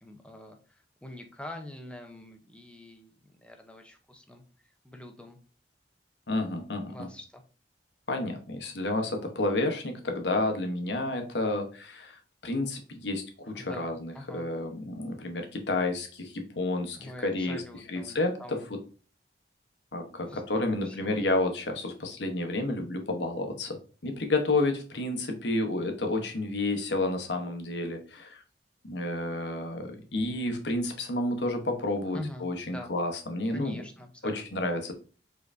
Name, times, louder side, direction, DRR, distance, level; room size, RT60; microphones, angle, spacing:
voice 1, 0.0-4.4 4.8-5.4 6.9-7.4 13.5-14.5 17.0-18.7 20.3-21.2 32.1-32.9 33.5-34.6, left 1 dB, 5° left, 4 dB, 0.7 m, -44 dB
voice 2, 6.3-7.1 8.1-17.6 17.9-18.8 19.9-28.4 28.8-33.8 34.2-34.9, left 2 dB, 80° left, 4 dB, 1.0 m, -30 dB
5.3 x 3.8 x 2.6 m, 0.37 s
head